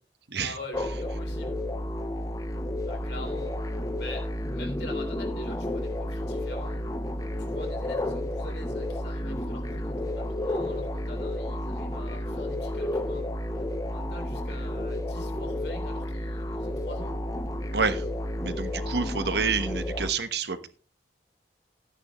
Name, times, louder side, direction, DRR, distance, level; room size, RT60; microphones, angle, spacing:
voice 1, 0.4-1.7 2.8-3.6 4.0-6.9 7.4-13.3 13.5-17.2, left 1 dB, 70° left, 3 dB, 3.5 m, -44 dB
sound 1, 0.7-20.1, left 1 dB, 20° left, 0.7 m, -31 dB
voice 2, 17.7-18.0 18.4-20.7, right 5 dB, 65° right, 10 dB, 1.1 m, -28 dB
14.0 x 9.8 x 3.0 m, 0.37 s
head